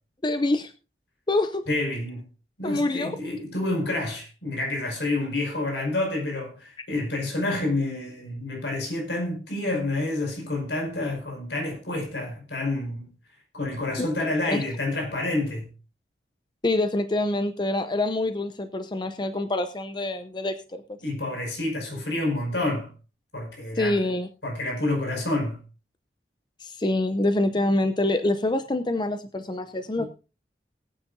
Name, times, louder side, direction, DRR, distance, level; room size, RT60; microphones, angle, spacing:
voice 1, 0.2-0.7 1.3-1.7 2.6-3.1 14.0-14.1 14.5-14.6 16.6-21.0 23.8-24.3 26.6-30.0, left 2 dB, 25° left, 0.6 m, -26 dB
voice 2, 1.7-2.3 2.6-13.1 13.5-15.7 21.0-22.9 23.3-24.0 24.4-25.6 30.0-30.1, left 2 dB, 80° left, 5.3 m, -28 dB
21.0 x 9.0 x 2.7 m
head